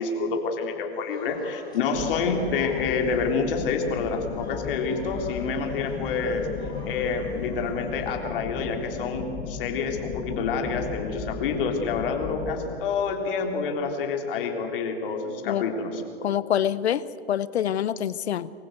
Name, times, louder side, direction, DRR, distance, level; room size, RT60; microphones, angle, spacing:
voice 1, 0.0-6.5 6.8-16.0, left 5 dB, 55° left, 3 dB, 3.5 m, -28 dB
sound 1, 0.9-8.1, left 2 dB, 10° left, 6.1 m, -47 dB
sound 2, 1.9-12.6, left 5 dB, 30° left, 1.6 m, -36 dB
voice 2, 16.2-17.0 17.3-18.5, left 10 dB, 75° left, 18 dB, 0.9 m, -25 dB
24.0 x 15.5 x 7.9 m, 2.6 s
hypercardioid pair, 135°, 32 cm